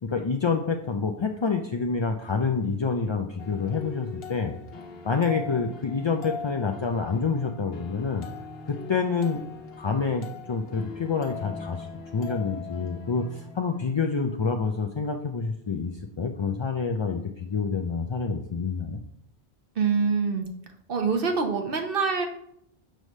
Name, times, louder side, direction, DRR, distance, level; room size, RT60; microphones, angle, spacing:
voice 1, 0.0-4.5 5.0-8.3 8.7-9.4 9.8-11.9 12.1-19.0, left 5 dB, 45° left, 3 dB, 0.3 m, -27 dB
sound 1, 3.4-14.4, left 5 dB, 70° left, 1.1 m, -41 dB
voice 2, 19.8-20.5 20.9-22.3, right 5 dB, 60° right, 4 dB, 1.1 m, -25 dB
7.6 x 3.3 x 5.3 m, 0.72 s
omnidirectional pair, 1.1 m